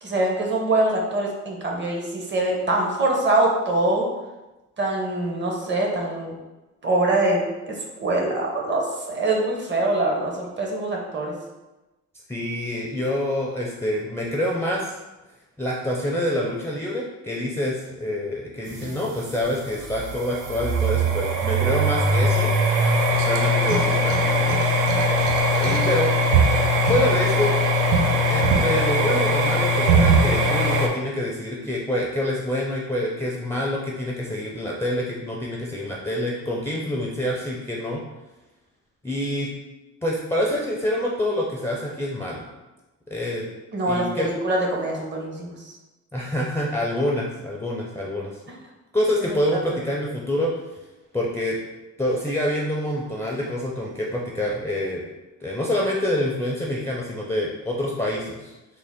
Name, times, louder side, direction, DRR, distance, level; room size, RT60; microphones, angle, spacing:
voice 1, 0.0-4.1 4.8-6.3 6.8-7.4 7.7-7.8 8.0-11.3 43.7-45.7 49.3-49.4, right 2 dB, 35° right, 0 dB, 0.9 m, -24 dB
voice 2, 12.3-14.9 15.6-22.5 23.1-24.8 25.6-26.1 26.9-27.5 28.3-38.0 39.0-39.5 40.0-42.4 43.1-43.5 43.9-44.3 46.1-48.3 48.9-50.5 51.1-51.6 52.0-55.0 55.4-58.5, left 1 dB, 10° left, -3 dB, 0.4 m, -26 dB
sound 1, 18.7-30.9, right 1 dB, 80° right, 0.6 m, -20 dB
3.6 x 2.1 x 3.5 m, 1.1 s
cardioid pair, 90°, 30 cm